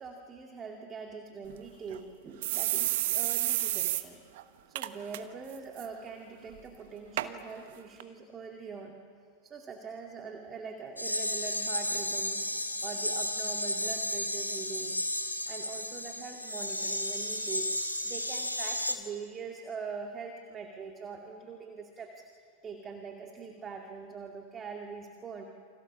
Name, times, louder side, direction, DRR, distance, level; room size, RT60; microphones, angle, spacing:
voice 1, 0.0-4.2 4.7-9.0 9.4-15.0 15.5-17.7 18.0-22.3 22.6-25.4, right 5 dB, 20° right, 3 dB, 2.3 m, -43 dB
sound 1, 1.5-1.6 1.9-2.0 2.4-4.0 4.4-4.5 4.8-5.2 5.5-5.9 6.5-6.6 7.2-7.3 8.0-8.1, right 16 dB, 50° right, 1.2 m, -30 dB
sound 2, 11.0-18.9, left 1 dB, 85° left, 2.7 m, -33 dB
29.5 x 26.0 x 7.4 m, 2.2 s
figure-of-eight pair, 90°, 0 cm